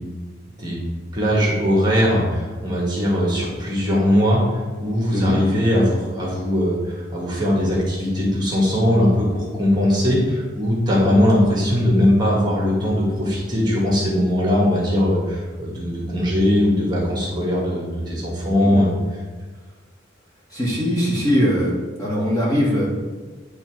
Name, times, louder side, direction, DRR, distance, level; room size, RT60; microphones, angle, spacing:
voice 1, 1.1-4.4 4.8-18.9, left 1 dB, 20° right, -4 dB, 1.5 m, -20 dB
voice 2, 20.5-21.7 22.0-22.9, equal, 20° left, -6 dB, 1.7 m, -21 dB
9.7 x 3.5 x 4.6 m, 1.4 s
head